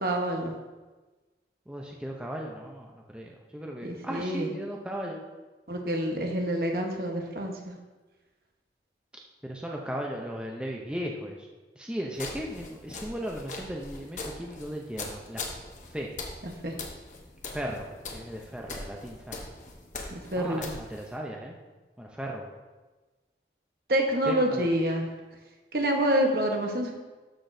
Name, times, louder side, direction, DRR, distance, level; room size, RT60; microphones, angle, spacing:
voice 1, 0.0-0.5 3.8-4.5 5.7-7.5 16.6-16.7 20.1-20.7 23.9-25.1 25.7-26.9, right 1 dB, 55° right, 2 dB, 1.1 m, -27 dB
voice 2, 1.7-5.2 9.4-11.4 11.8-15.5 15.9-16.1 17.5-19.4 20.4-21.5 22.0-22.5 24.3-24.7, equal, 5° right, -1 dB, 0.6 m, -36 dB
sound 1, 12.1-21.2, left 3 dB, 45° left, 1.0 m, -41 dB
13.0 x 6.0 x 2.7 m, 1.2 s
head